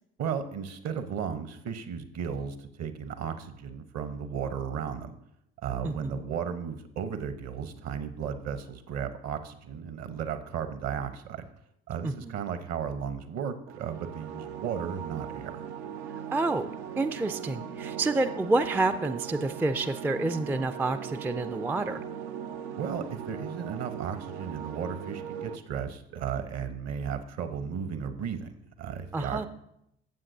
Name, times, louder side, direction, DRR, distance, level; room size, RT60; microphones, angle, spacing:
voice 1, 0.2-5.1 5.6-11.5 11.9-15.6 22.7-29.5, right 7 dB, 55° right, 11 dB, 1.0 m, -35 dB
voice 2, 5.8-6.2 12.0-12.4 16.3-16.7 17.0-22.0 29.1-29.4, right 2 dB, 5° right, 10 dB, 0.3 m, -28 dB
sound 1, 13.7-25.6, right 8 dB, 80° right, 0.6 m, -39 dB
14.5 x 7.5 x 2.7 m, 0.78 s
hypercardioid pair, 55°, 32 cm